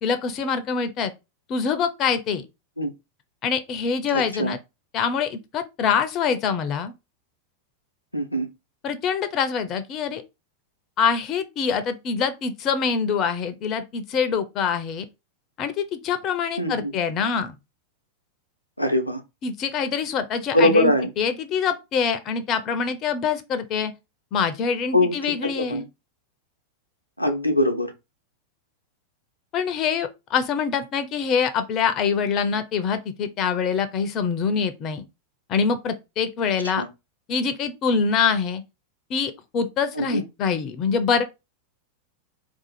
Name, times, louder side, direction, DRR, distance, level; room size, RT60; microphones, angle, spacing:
voice 1, 0.0-1.1 1.5-2.4 3.4-4.6 4.9-6.9 8.8-10.2 11.0-15.1 15.6-17.5 19.4-23.9 24.3-25.8 29.5-35.0 35.5-36.8 37.3-38.6 39.1-41.2, left 6 dB, 35° left, 0.5 m, -25 dB
voice 2, 4.1-4.5 8.1-8.5 16.6-16.9 18.8-19.2 20.5-21.1 24.9-25.1 25.4-25.9 27.2-27.9 36.8-36.9 39.9-40.2, left 1 dB, 90° left, 0.5 m, -22 dB
2.6 x 2.4 x 4.1 m
figure-of-eight pair, 90°, 0 cm